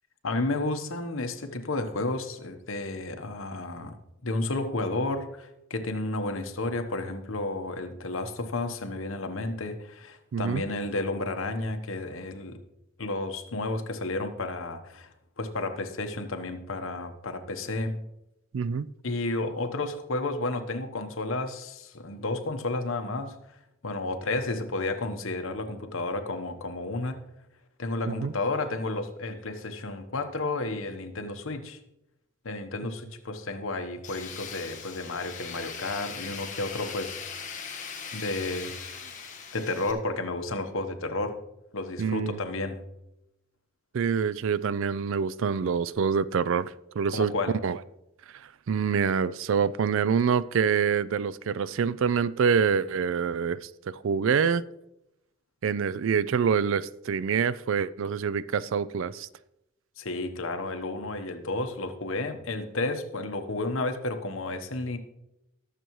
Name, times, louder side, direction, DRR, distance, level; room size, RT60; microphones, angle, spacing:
voice 1, 0.2-12.6 13.0-15.1 15.4-18.0 19.0-23.4 23.8-27.2 27.8-31.8 32.4-37.3 38.1-39.0 39.5-41.4 41.7-42.8 47.1-47.6 60.0-65.0, left 2 dB, 65° left, 6 dB, 1.1 m, -32 dB
voice 2, 10.3-10.6 18.5-18.9 28.1-28.3 42.0-42.4 43.9-47.3 47.6-47.8 48.3-54.6 55.6-59.3, right 6 dB, 65° right, 18 dB, 0.4 m, -26 dB
Tools, 34.0-39.9, left 6 dB, 35° left, 1.2 m, -40 dB
19.5 x 6.8 x 3.1 m, 0.86 s
head